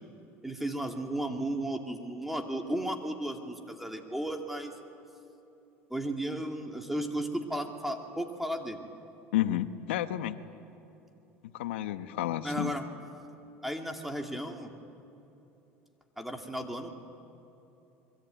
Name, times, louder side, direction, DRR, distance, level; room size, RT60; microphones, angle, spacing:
voice 1, 0.4-4.7 5.9-8.8 12.4-12.9 13.6-14.7 16.2-17.0, right 1 dB, 5° right, 3 dB, 2.5 m, -34 dB
voice 2, 9.3-10.4 11.5-12.7, left 13 dB, 85° left, 11 dB, 1.1 m, -31 dB
24.5 x 23.0 x 9.2 m, 3.0 s
supercardioid pair, 95°, 6 cm